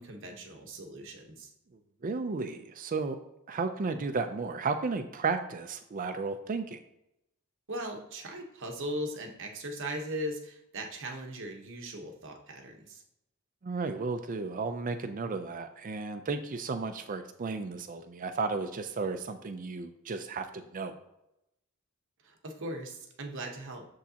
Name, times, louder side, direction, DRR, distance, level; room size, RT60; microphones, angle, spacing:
voice 1, 0.0-1.5 7.7-13.0 22.2-23.9, right 1 dB, 60° right, 3 dB, 1.0 m, -39 dB
voice 2, 2.0-3.2 3.5-6.8 13.6-20.9, right 4 dB, 40° right, 8 dB, 0.4 m, -33 dB
7.0 x 6.3 x 2.8 m, 0.85 s
head